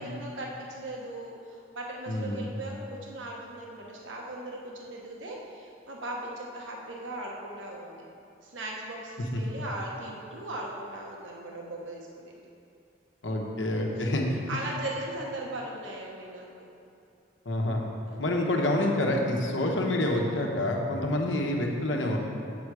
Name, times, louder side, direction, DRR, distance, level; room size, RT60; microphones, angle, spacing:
voice 1, 0.0-8.0 8.4-12.5 13.9-14.2 14.5-16.7 18.1-18.2, right 1 dB, 80° right, -2 dB, 1.1 m, -38 dB
voice 2, 2.1-2.5 9.3-9.4 13.2-14.4 17.4-17.8 18.2-22.2, left 1 dB, 80° left, 1 dB, 1.1 m, -27 dB
7.8 x 7.8 x 4.8 m, 2.5 s
head